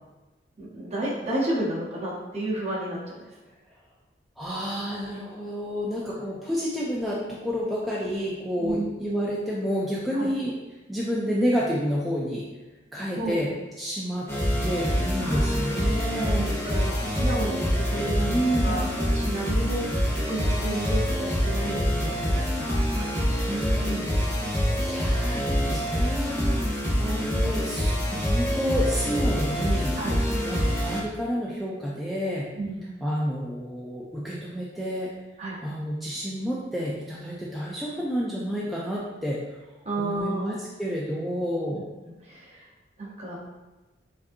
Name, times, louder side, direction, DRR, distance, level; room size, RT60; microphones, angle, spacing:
voice 1, 0.6-3.2 8.6-8.9 10.1-10.3 13.1-13.5 15.2-15.5 16.2-18.3 18.6-23.6 29.9-30.2 32.6-32.8 35.4-35.6 39.8-40.5 41.7-41.8 42.2-42.6 43.0-43.4, right 1 dB, 35° right, -5 dB, 0.9 m, -32 dB
voice 2, 4.4-10.5 10.9-12.5 12.9-13.5 13.8-14.3 14.6-16.5 18.3-18.9 23.5-26.7 27.0-30.0 30.4-32.5 33.0-35.1 35.6-39.6 40.0-41.8, equal, ahead, -7 dB, 0.3 m, -30 dB
sound 1, 14.3-31.0, equal, 15° left, 0.9 m, -25 dB
5.0 x 2.7 x 2.5 m, 1.1 s
head